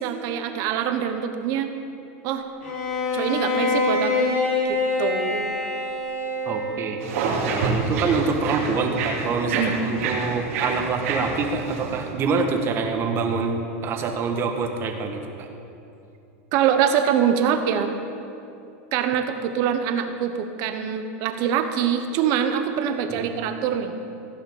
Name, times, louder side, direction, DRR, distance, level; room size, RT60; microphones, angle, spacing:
voice 1, 0.0-1.7 2.2-2.5 3.1-4.4 4.7-5.6 9.5-9.7 16.5-17.9 18.9-23.9, right 8 dB, 50° right, 7 dB, 1.1 m, -24 dB
Bowed string instrument, 2.6-7.0, left 3 dB, 90° left, 3.3 m, -25 dB
voice 2, 6.4-7.0 7.4-15.5 23.1-23.3, right 4 dB, 35° right, 4 dB, 1.5 m, -26 dB
sound 1, 7.0-12.1, right 3 dB, 75° right, 2.7 m, -28 dB
16.0 x 5.6 x 8.7 m, 2.7 s
supercardioid pair, 135°, 8 cm